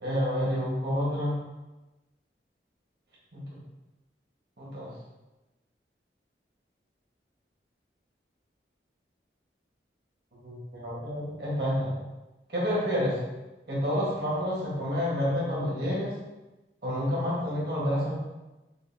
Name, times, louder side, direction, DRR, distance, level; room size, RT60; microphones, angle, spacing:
voice 1, 0.0-1.4 3.3-3.4 4.6-4.9 10.4-11.9 12.5-13.2 13.7-16.2 16.8-18.1, equal, 60° right, -7 dB, 1.3 m, -29 dB
5.1 x 2.4 x 2.6 m, 1.0 s
head